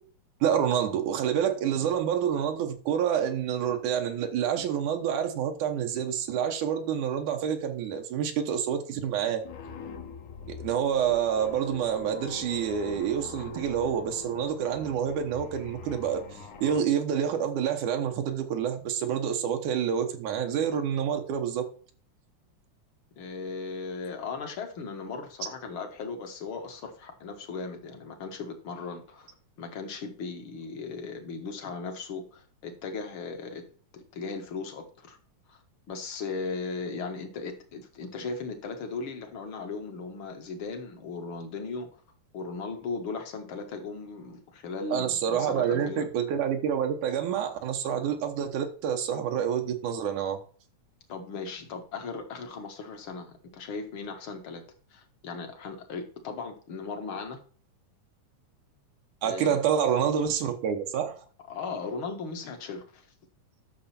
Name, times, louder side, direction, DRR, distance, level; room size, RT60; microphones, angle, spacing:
voice 1, 0.4-9.5 10.5-16.2 16.6-21.7 44.9-50.4 59.2-61.2, right 8 dB, 85° right, 5 dB, 2.7 m, -28 dB
sound 1, 9.4-16.8, left 5 dB, 85° left, 3.0 m, -43 dB
voice 2, 23.2-29.3 29.6-33.6 33.9-35.2 35.5-35.6 35.9-41.9 42.3-46.1 51.1-54.6 54.9-57.4 59.2-59.6 61.5-63.1, left 4 dB, 50° left, 5 dB, 2.1 m, -37 dB
11.0 x 6.7 x 4.3 m, 0.42 s
omnidirectional pair, 3.5 m